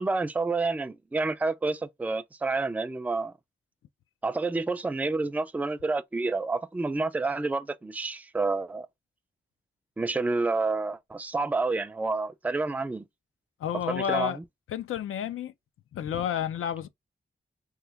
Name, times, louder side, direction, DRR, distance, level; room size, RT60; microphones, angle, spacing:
voice 1, 0.0-3.3 4.2-8.9 10.0-13.0 13.9-14.4, right 3 dB, 10° right, 0.3 m, -29 dB
voice 2, 13.6-14.4 14.7-15.5 15.9-16.9, left 9 dB, 85° left, 0.4 m, -30 dB
3.0 x 2.2 x 3.4 m
cardioid pair, 80°, 21 cm